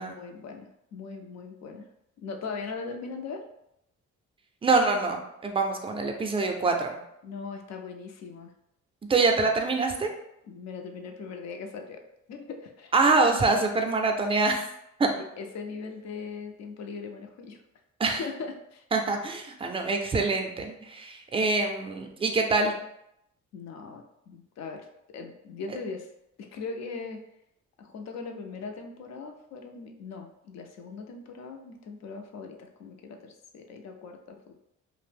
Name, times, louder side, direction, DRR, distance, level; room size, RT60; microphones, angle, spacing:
voice 1, 0.0-1.9 2.2-3.5 7.2-8.5 10.5-12.0 12.3-12.9 15.4-17.6 18.2-18.8 23.5-26.1 26.4-27.2 27.8-34.5, left 4 dB, 60° left, 4 dB, 0.5 m, -40 dB
voice 2, 4.6-7.0 9.1-10.1 12.9-14.7 15.0-15.1 18.0-18.2 18.9-22.7, right 3 dB, 20° right, 3 dB, 0.4 m, -25 dB
2.5 x 2.0 x 3.3 m, 0.81 s
cardioid pair, 90°, 30 cm